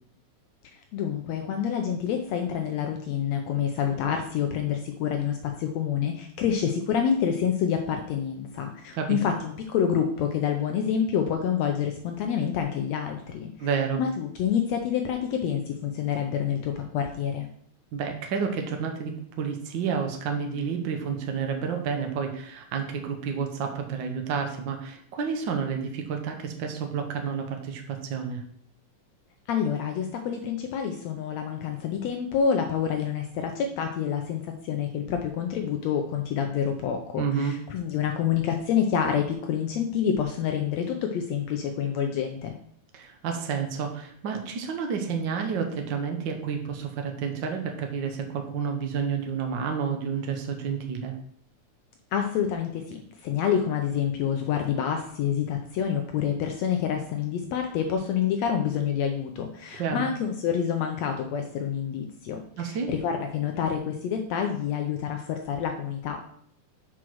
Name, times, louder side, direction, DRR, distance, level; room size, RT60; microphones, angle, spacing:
voice 1, 0.7-13.7 14.0-17.5 29.5-42.5 52.1-66.2, left 8 dB, 75° left, 4 dB, 1.7 m, -27 dB
voice 2, 13.6-14.0 17.9-28.4 37.2-37.5 42.9-51.1 59.8-60.1 62.6-62.9, right 6 dB, 85° right, 4 dB, 1.0 m, -30 dB
6.2 x 4.8 x 6.1 m, 0.64 s
omnidirectional pair, 3.6 m